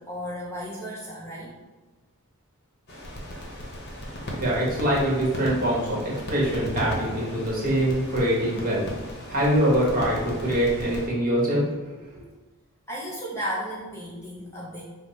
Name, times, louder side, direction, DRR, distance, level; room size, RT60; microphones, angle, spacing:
voice 1, 0.0-1.5 5.9-6.0 12.9-14.8, equal, 10° left, -6 dB, 0.6 m, -34 dB
sound 1, 2.9-11.1, equal, 45° left, 0.9 m, -36 dB
voice 2, 4.4-8.9 9.3-11.6, equal, 40° right, -5 dB, 1.2 m, -24 dB
5.1 x 2.1 x 4.1 m, 1.2 s
head